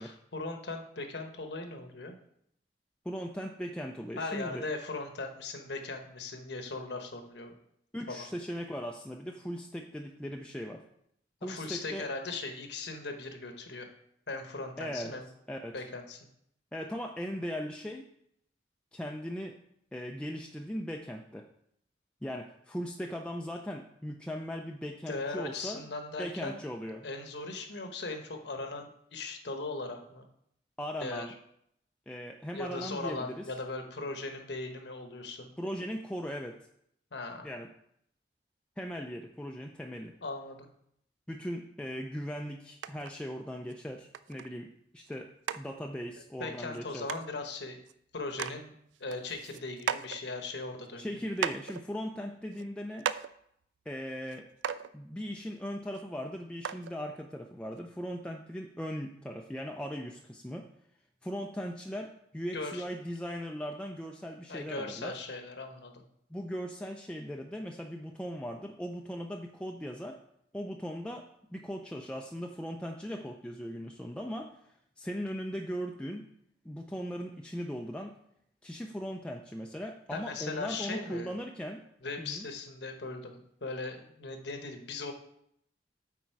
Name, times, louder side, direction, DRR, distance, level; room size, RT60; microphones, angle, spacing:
voice 1, 0.0-2.1 4.2-7.6 8.1-8.3 11.5-13.9 14.3-15.3 15.7-16.2 25.1-26.6 27.0-30.2 31.0-31.3 32.5-35.5 37.1-37.4 40.2-40.7 46.4-47.8 48.1-48.7 49.0-51.1 62.5-62.8 64.5-65.9 80.1-81.3 82.0-85.1, left 3 dB, 70° left, 5 dB, 1.0 m, -38 dB
voice 2, 3.0-4.7 7.9-10.8 11.4-12.1 14.8-15.1 15.5-15.8 16.7-18.1 18.9-19.6 19.9-21.5 22.2-25.8 26.2-27.1 30.8-31.3 32.1-33.5 35.6-36.7 37.4-37.7 38.8-40.2 41.3-47.1 51.0-53.1 53.9-54.5 54.9-60.7 61.2-65.2 66.3-70.2 70.5-74.6 75.0-76.3 76.6-78.1 78.6-81.8 82.2-82.5, equal, 5° left, 1 dB, 0.4 m, -38 dB
sound 1, 42.8-43.1 43.7-43.8 44.1-44.5 45.1-45.2 45.5-45.6 46.7-46.8 47.1-47.3 47.9-48.0 48.3-48.6 48.9-50.2 50.9-51.0 51.4-51.8 52.5-52.7 53.0-53.3 54.3-54.4 54.6-54.9 55.9-56.0 56.6-56.9 57.8-57.9, right 8 dB, 85° right, 0.3 m, -35 dB
8.6 x 4.2 x 4.6 m, 0.72 s
head